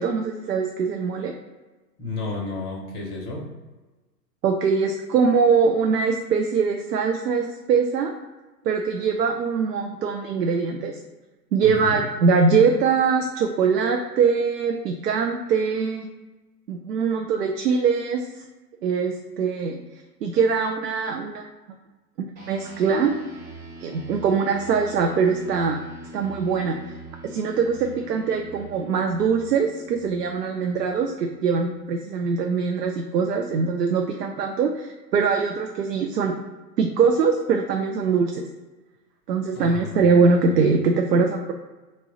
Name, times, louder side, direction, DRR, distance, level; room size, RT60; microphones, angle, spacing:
voice 1, 0.0-1.3 4.4-8.1 8.6-11.0 11.5-16.1 16.7-18.4 18.8-19.8 20.2-21.4 22.2-23.1 23.8-25.8 26.1-26.8 27.2-36.3 36.8-38.5 39.3-41.5, right 5 dB, 75° right, 3 dB, 0.5 m, -22 dB
voice 2, 2.0-3.4 11.6-12.1 39.5-40.0 40.5-40.7, left 2 dB, 20° left, -1 dB, 0.6 m, -32 dB
sound 1, 22.4-32.1, right 1 dB, 35° right, 0.9 m, -43 dB
3.1 x 2.3 x 3.7 m, 1.2 s
figure-of-eight pair, 110°, 50 cm